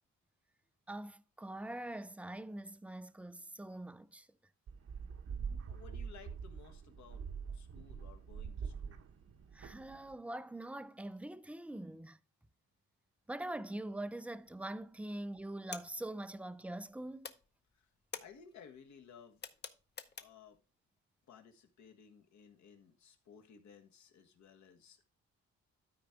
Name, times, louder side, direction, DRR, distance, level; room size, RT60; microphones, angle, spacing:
voice 1, 0.9-4.3 9.5-12.2 13.3-17.3, right 1 dB, 5° right, 0.4 m, -43 dB
sound 1, 4.7-10.1, right 6 dB, 50° right, 0.9 m, -44 dB
voice 2, 5.7-7.3 7.5-9.1 17.7-17.9 18.2-19.4 20.2-20.6 21.3-25.0, left 7 dB, 65° left, 1.5 m, -58 dB
sound 2, 14.4-14.9 15.2-16.9 17.2-20.6, left 6 dB, 35° left, 0.8 m, -49 dB
12.5 x 4.6 x 3.6 m
cardioid pair, 90°, 30 cm